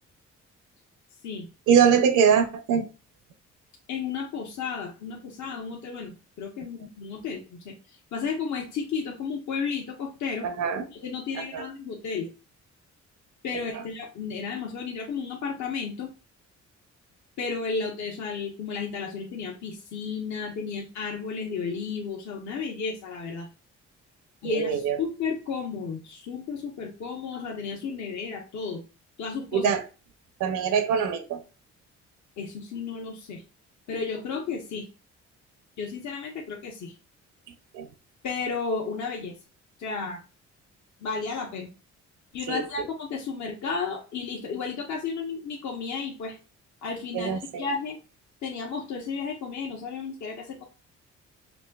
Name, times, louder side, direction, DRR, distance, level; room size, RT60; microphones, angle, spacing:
voice 1, 1.7-2.9 10.4-10.9 11.3-11.7 13.7-13.8 24.4-25.0 29.5-29.9 30.4-31.4 37.7-37.9 42.5-42.9 47.1-47.7, right 7 dB, 85° right, 9 dB, 0.7 m, -23 dB
voice 2, 3.9-7.7 8.1-10.5 11.0-12.3 13.4-16.1 17.4-23.5 24.4-28.8 29.2-29.7 32.4-33.4 33.9-34.9 35.8-36.9 38.2-39.3 39.8-40.2 41.0-41.7 42.3-46.4 46.8-48.0 48.4-50.6, left 5 dB, 70° left, 0 dB, 0.9 m, -33 dB
5.2 x 2.6 x 2.3 m, 0.34 s
cardioid pair, 90°, 30 cm